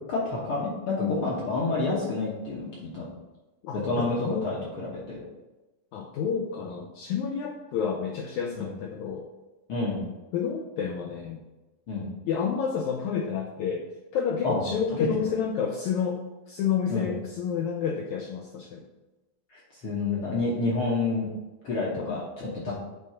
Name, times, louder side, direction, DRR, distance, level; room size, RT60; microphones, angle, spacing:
voice 1, 0.1-3.1 3.7-5.2 8.6-8.7 9.7-10.0 11.9-12.1 14.4-14.6 16.9-17.1 19.5-21.3 21.6-22.7, left 3 dB, 65° left, -5 dB, 1.3 m, -29 dB
voice 2, 3.6-4.5 5.9-9.3 10.3-11.4 12.3-13.8 14.1-16.2 16.5-18.8 21.9-22.3 22.7-22.8, left 7 dB, 85° left, 1 dB, 1.7 m, -29 dB
8.4 x 3.7 x 4.3 m, 1.1 s
omnidirectional pair, 4.1 m